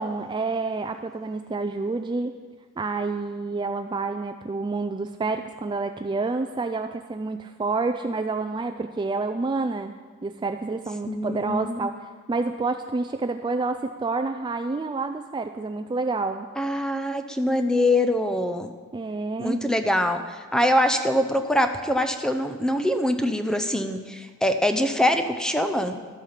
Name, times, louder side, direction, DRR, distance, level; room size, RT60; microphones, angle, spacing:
voice 1, 0.0-2.3 2.8-9.9 10.2-12.0 12.3-16.5 18.9-19.6, right 3 dB, 20° right, 7 dB, 0.3 m, -28 dB
voice 2, 11.1-11.9 16.6-18.7 19.4-20.2 20.5-26.0, left 1 dB, 5° left, 7 dB, 0.7 m, -23 dB
13.0 x 8.2 x 5.8 m, 1.5 s
head